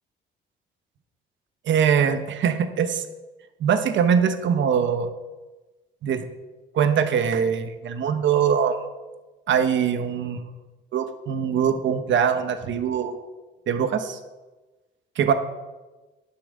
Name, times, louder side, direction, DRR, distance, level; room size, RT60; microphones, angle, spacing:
voice 1, 1.7-3.0 3.6-5.1 6.0-6.2 6.7-8.9 9.5-10.4 10.9-13.3 13.7-14.2 15.2-15.3, right 7 dB, 70° right, 9 dB, 1.1 m, -22 dB
10.0 x 5.9 x 7.4 m, 1.2 s
cardioid pair, 90°, 20 cm